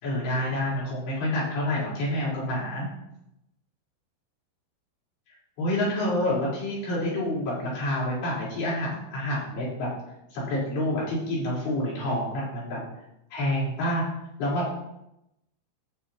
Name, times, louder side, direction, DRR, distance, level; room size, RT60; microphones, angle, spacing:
voice 1, 0.0-2.9 5.6-9.9 10.3-12.8 13.3-14.0 14.4-14.8, left 1 dB, 60° left, -7 dB, 6.2 m, -28 dB
16.0 x 6.9 x 2.9 m, 0.84 s
omnidirectional pair, 5.6 m